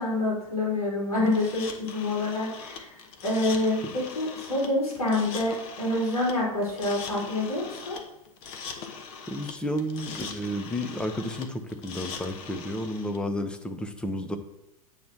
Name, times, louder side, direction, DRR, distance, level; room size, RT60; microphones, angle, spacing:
voice 1, 0.0-8.0, left 2 dB, 75° left, -5 dB, 2.9 m, -27 dB
sound 1, 1.3-13.2, left 5 dB, 50° left, 1.0 m, -41 dB
voice 2, 9.3-14.4, left 1 dB, 5° left, 8 dB, 0.7 m, -32 dB
8.6 x 3.0 x 6.0 m, 0.88 s
figure-of-eight pair, 90°, 19 cm